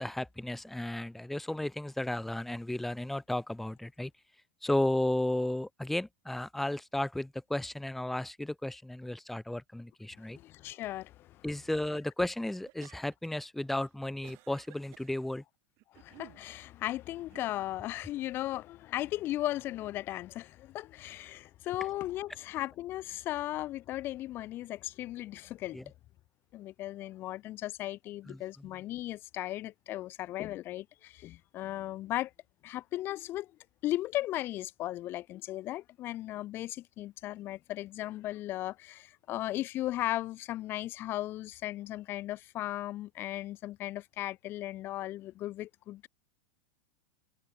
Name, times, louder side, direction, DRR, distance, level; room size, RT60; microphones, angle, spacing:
voice 1, 0.0-4.1 4.6-10.4 11.4-15.4 25.7-25.8 28.3-28.7, left 1 dB, 5° left, 1.3 m, -34 dB
voice 2, 10.2-11.5 15.9-25.8 26.5-32.3 32.6-33.5 33.8-46.1, left 15 dB, 40° left, 1.2 m, -36 dB
sound 1, 12.7-13.4 13.8-15.1 15.8-16.4 17.1-17.5, right 24 dB, 50° right, 2.9 m, -55 dB
supercardioid pair, 125°, 6 cm